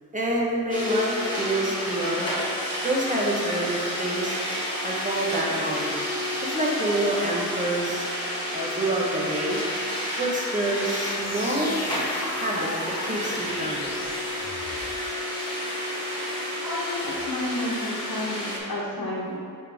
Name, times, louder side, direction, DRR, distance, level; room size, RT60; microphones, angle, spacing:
voice 1, 0.1-2.3 2.8-4.4 4.8-6.0 6.4-8.1 8.5-9.6 10.2-11.8 12.4-13.9, right 1 dB, 20° right, -3 dB, 1.1 m, -27 dB
sound 1, 0.7-18.6, left 1 dB, 15° left, 1.5 m, -30 dB
sound 2, 11.1-14.9, left 2 dB, 50° left, 0.8 m, -37 dB
voice 2, 16.6-19.4, left 1 dB, 75° left, -8 dB, 1.1 m, -31 dB
5.8 x 5.2 x 3.5 m, 2.3 s
wide cardioid pair, 80°, 35 cm